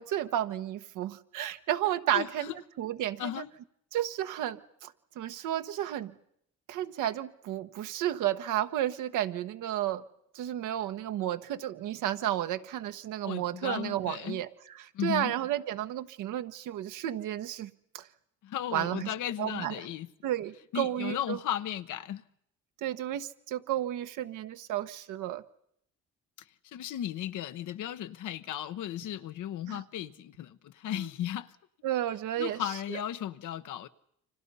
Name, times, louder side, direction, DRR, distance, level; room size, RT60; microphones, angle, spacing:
voice 1, 0.0-3.4 3.9-6.1 6.7-10.0 10.3-14.5 14.8-18.1 18.7-19.9 20.2-21.4 22.8-25.4 29.7-29.8 30.9-31.1 31.8-32.6 32.9-33.0, right 12 dB, 90° right, 1.2 m, -32 dB
voice 2, 13.2-14.4 14.9-15.3 18.4-20.1 20.7-22.2 26.7-31.6 32.4-33.9, left 11 dB, 80° left, 1.0 m, -35 dB
29.5 x 26.0 x 5.6 m
cardioid pair, 90°, 30 cm